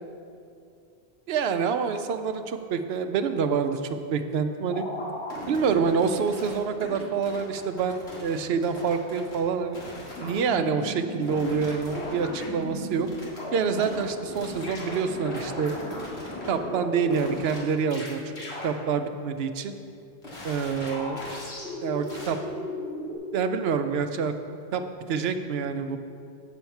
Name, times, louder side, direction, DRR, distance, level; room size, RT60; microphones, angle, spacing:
voice 1, 1.3-4.9 5.5-9.8 10.2-13.1 13.5-15.8 16.5-18.2 18.6-19.8 20.4-21.2 21.8-22.4 23.3-24.3 24.7-24.8 25.1-26.0, right 6 dB, 70° right, 8 dB, 0.8 m, -27 dB
sound 1, 4.7-7.0 7.2-8.4 8.6-9.4 9.7-14.0 14.3-17.6 17.9-18.1 18.4-18.7 20.2-23.2, left 1 dB, 85° left, 2.0 m, -36 dB
8.3 x 4.5 x 7.1 m, 2.4 s
omnidirectional pair, 1.1 m